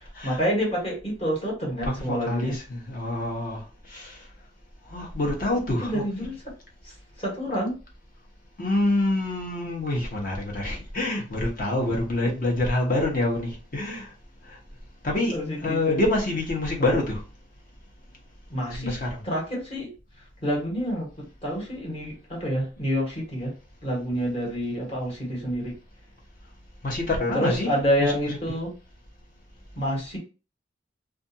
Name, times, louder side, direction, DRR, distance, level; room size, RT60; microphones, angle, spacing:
voice 1, 0.2-2.5 5.8-6.3 6.8-7.8 15.3-16.0 16.8-17.0 18.5-19.0 19.2-19.9 20.4-23.5 23.8-25.7 27.3-28.7 29.8-30.2, equal, 30° left, 1.2 m, -28 dB
voice 2, 1.8-3.6 3.9-4.2 4.9-6.0 8.6-14.1 15.0-17.2 18.8-19.2 26.8-27.7 28.0-28.6, left 2 dB, 45° left, 0.9 m, -26 dB
2.5 x 2.4 x 2.7 m
head